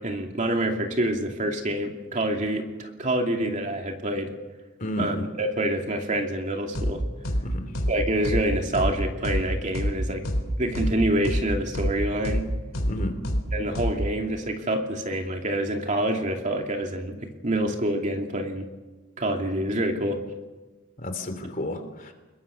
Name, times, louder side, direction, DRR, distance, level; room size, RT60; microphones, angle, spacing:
voice 1, 0.0-4.3 5.0-7.0 7.9-10.2 10.6-12.5 13.5-18.7 19.2-20.2, right 1 dB, 40° right, 3 dB, 2.7 m, -27 dB
voice 2, 4.8-5.2 7.4-7.7 12.9-13.1 21.0-22.1, left 1 dB, 45° left, 7 dB, 3.0 m, -31 dB
sound 1, 6.7-6.9 7.2-7.4 7.7-7.9 8.2-8.4 8.7-8.9 9.2-9.4 9.7-9.9 10.2-10.4 10.7-10.9 11.2-11.4 11.7-11.9 12.2-12.4 12.7-12.9 13.2-13.4 13.7-13.9, equal, 75° left, 4.1 m, -25 dB
26.5 x 21.5 x 7.0 m, 1.2 s
head